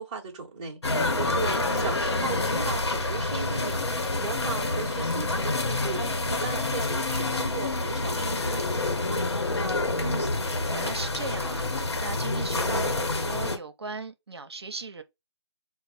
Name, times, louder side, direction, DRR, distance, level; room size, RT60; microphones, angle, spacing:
voice 1, 0.0-9.2, right 5 dB, 20° right, 0.9 m, -37 dB
sound 1, 0.8-13.6, left 2 dB, 70° left, 1.0 m, -27 dB
voice 2, 10.0-10.4 10.7-15.0, right 4 dB, 65° right, 0.7 m, -38 dB
4.0 x 2.1 x 4.2 m
figure-of-eight pair, 150°, 15 cm